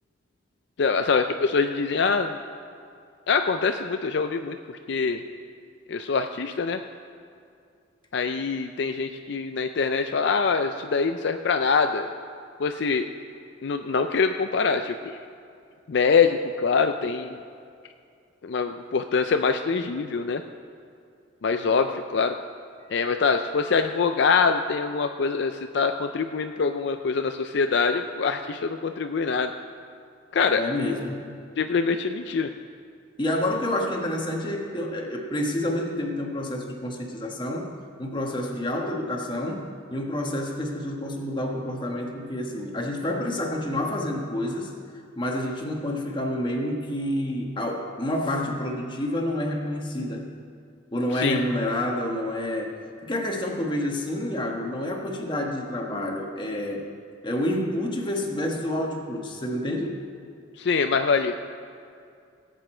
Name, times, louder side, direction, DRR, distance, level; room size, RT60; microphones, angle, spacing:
voice 1, 0.8-2.4 3.3-5.2 5.9-6.8 8.1-12.1 12.6-13.1 13.6-15.2 15.9-17.4 18.4-20.4 21.4-22.4 22.9-29.5 30.3-30.6 31.6-32.5 51.1-51.4 60.6-61.3, left 5 dB, 60° left, 7 dB, 0.4 m, -24 dB
voice 2, 30.4-31.3 33.2-37.7 38.0-44.7 45.2-50.3 50.9-56.9 57.2-60.0, left 1 dB, 25° left, 1 dB, 1.3 m, -28 dB
19.0 x 8.2 x 4.4 m, 2.4 s
head